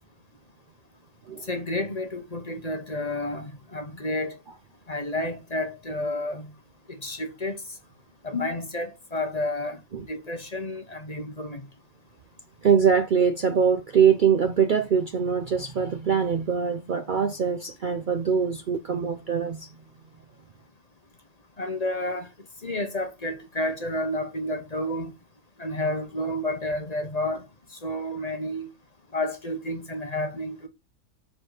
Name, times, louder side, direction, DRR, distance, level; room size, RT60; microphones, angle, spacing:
voice 1, 1.5-4.4 4.9-6.5 6.9-7.6 8.2-9.8 10.1-11.6 21.6-22.3 22.6-25.1 25.6-27.5 27.8-28.7 29.1-30.7, left 1 dB, 30° left, 0.9 m, -30 dB
voice 2, 12.6-19.7, right 7 dB, 80° right, 0.4 m, -23 dB
6.0 x 4.8 x 6.5 m
omnidirectional pair, 1.7 m